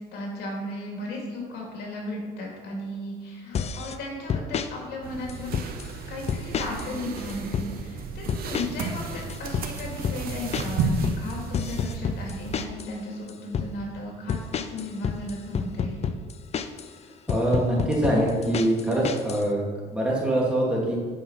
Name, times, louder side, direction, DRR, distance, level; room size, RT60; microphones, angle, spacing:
voice 1, 0.1-5.7 6.1-16.0, left 1 dB, 75° left, -1 dB, 2.6 m, -35 dB
sound 1, 3.5-4.0 4.3-4.7 5.3-5.9 6.3-6.9 7.2-7.7 8.3-8.9 9.2-12.9 13.3-13.7 14.3-16.9 17.3-19.4, left 7 dB, 40° left, 0.5 m, -29 dB
sound 2, 5.0-12.7, right 4 dB, 65° right, 0.9 m, -33 dB
voice 2, 17.3-21.0, right 1 dB, 5° right, -5 dB, 2.5 m, -24 dB
8.6 x 5.6 x 5.6 m, 1.5 s
cardioid pair, 110°, 17 cm